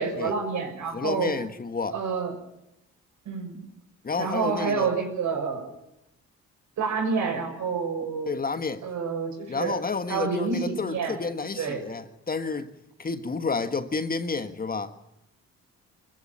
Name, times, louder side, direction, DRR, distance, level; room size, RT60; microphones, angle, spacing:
voice 1, 0.0-1.3 1.9-2.3 3.2-3.6 4.2-5.7 6.8-8.3 8.8-9.8 10.1-11.2 11.6-11.8, right 5 dB, 70° right, 6.6 m, -28 dB
voice 2, 0.9-2.0 4.0-4.9 8.2-8.8 9.5-12.7 13.0-14.9, left 4 dB, 30° left, 1.5 m, -30 dB
24.0 x 14.5 x 9.0 m
cardioid pair, 90°, 30 cm